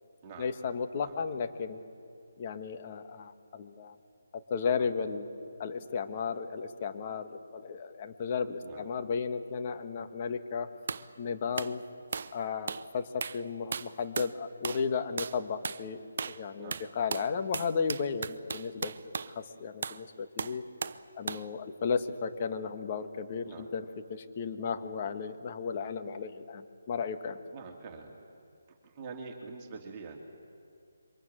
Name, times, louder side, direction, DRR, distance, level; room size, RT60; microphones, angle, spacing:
voice 1, 0.4-1.8 2.4-3.9 4.3-5.3 5.6-10.7 11.2-11.8 12.3-18.9 19.3-20.6 21.1-27.4, left 5 dB, 35° left, 7 dB, 1.7 m, -34 dB
voice 2, 8.6-9.0 16.6-16.8 23.4-23.7 27.5-28.1 28.8-30.2, right 4 dB, 25° right, 0 dB, 2.9 m, -45 dB
sound 1, 10.9-11.1 11.6-11.8 12.1-12.4 12.7-12.9 13.2-13.4 13.7-14.4 14.6-14.9 15.2-15.4 15.6-15.8 16.2-16.4 16.7-19.3 19.8-20.0 20.4-21.0 21.3-21.5, right 5 dB, 50° right, 0.8 m, -36 dB
27.5 x 24.0 x 7.6 m, 2.4 s
figure-of-eight pair, 150°, 0 cm